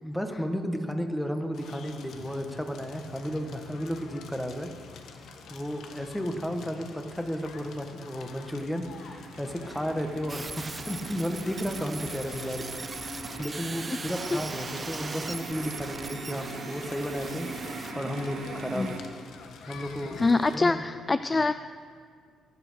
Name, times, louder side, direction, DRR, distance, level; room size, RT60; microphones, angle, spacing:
voice 1, 0.0-4.7 5.5-19.0 19.6-20.8, equal, 5° left, 5 dB, 1.6 m, -33 dB
Crackle, 1.5-20.5, left 5 dB, 75° left, 1.3 m, -47 dB
sound 1, 6.0-6.7 7.0-19.0, right 3 dB, 70° right, 2.0 m, -42 dB
sound 2, 10.3-17.9, right 3 dB, 30° right, 0.8 m, -40 dB
voice 2, 20.2-21.5, left 3 dB, 25° left, 12 dB, 0.4 m, -24 dB
23.0 x 8.0 x 6.5 m, 2.1 s
cardioid pair, 90°, 0 cm